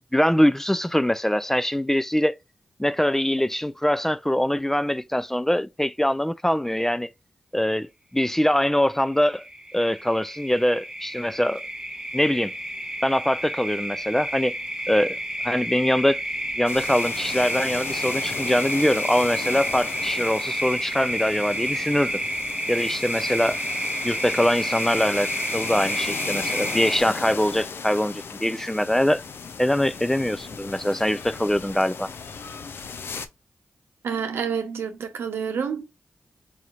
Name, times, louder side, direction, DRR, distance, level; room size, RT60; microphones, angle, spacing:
voice 1, 0.1-2.3 2.8-7.1 7.5-9.4 9.7-11.6 12.1-12.5 13.0-14.5 14.9-15.2 15.4-16.2 16.5-22.2 22.7-23.6 24.0-29.2 29.6-32.1, left 1 dB, 10° left, 0.4 m, -23 dB
sound 1, 8.9-27.0, right 1 dB, 15° right, 0.8 m, -30 dB
sound 2, 16.7-33.3, left 5 dB, 75° left, 0.5 m, -36 dB
voice 2, 34.0-35.8, right 6 dB, 90° right, 0.8 m, -28 dB
4.9 x 2.8 x 2.4 m
supercardioid pair, 40°, 4 cm